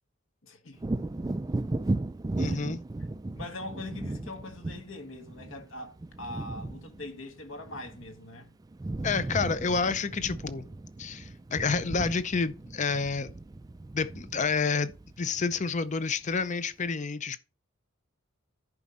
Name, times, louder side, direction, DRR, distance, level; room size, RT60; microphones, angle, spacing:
voice 1, 0.4-0.8 2.4-2.7 3.3-8.5, left 2 dB, 65° left, 1.4 m, -42 dB
Wind / Thunder, 0.8-8.4 8.6-15.9 16.3-16.4, right 2 dB, 20° right, 0.3 m, -36 dB
voice 2, 2.4-2.8 9.0-10.6 11.0-13.3 13.9-14.9 15.2-17.4, left 4 dB, 35° left, 0.6 m, -29 dB
11.0 x 5.1 x 4.2 m
head